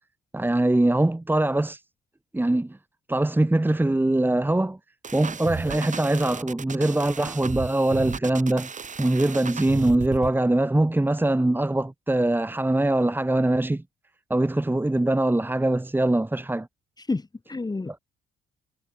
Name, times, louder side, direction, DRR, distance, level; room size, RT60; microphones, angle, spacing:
voice 1, 0.3-1.8 2.3-2.8 3.1-4.8 5.1-8.7 9.0-13.8 14.3-16.7, right 1 dB, 10° right, 1.7 m, -22 dB
sound 1, 5.0-10.3, right 5 dB, 40° right, 3.8 m, -34 dB
voice 2, 17.0-18.0, left 3 dB, 20° left, 2.5 m, -30 dB
cardioid pair, 90°, 20 cm